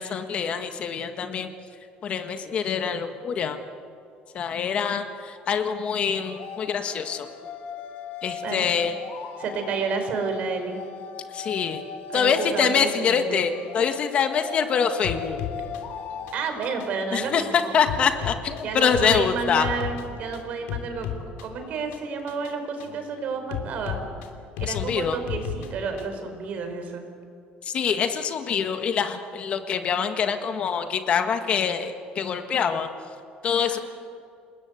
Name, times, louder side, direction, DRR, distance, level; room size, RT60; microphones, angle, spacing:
voice 1, 0.0-1.5 2.0-3.6 4.3-7.3 8.2-8.9 11.3-11.8 12.1-15.4 17.1-19.7 24.6-25.2 27.6-32.9 33.4-33.8, left 7 dB, 40° left, 7 dB, 1.6 m, -25 dB
sound 1, 5.3-16.3, left 7 dB, 60° left, 2.3 m, -39 dB
voice 2, 9.4-10.8 12.1-13.5 16.3-17.7 18.6-21.1 21.4-24.0 24.6-27.0 33.7-33.8, right 5 dB, 50° right, 6 dB, 4.7 m, -30 dB
sound 2, 15.0-26.2, left 8 dB, 90° left, 3.1 m, -36 dB
28.0 x 20.5 x 8.2 m, 2.4 s
cardioid pair, 160°, 3 cm